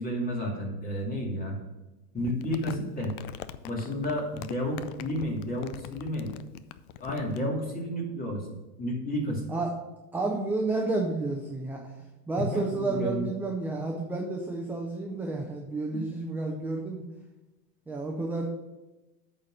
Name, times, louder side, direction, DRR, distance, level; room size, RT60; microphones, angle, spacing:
voice 1, 0.0-1.6 2.1-3.1 3.6-6.3 7.0-8.5 8.8-9.5 12.4-13.2 15.9-16.0, equal, 15° left, -2 dB, 2.4 m, -31 dB
Crumpling crinkling, 2.2-7.4, left 12 dB, 60° left, 0.6 m, -43 dB
voice 2, 10.1-11.9 12.3-17.0 17.9-18.5, right 3 dB, 5° right, 0 dB, 0.4 m, -31 dB
8.4 x 4.4 x 6.3 m, 1.1 s
supercardioid pair, 120°, 49 cm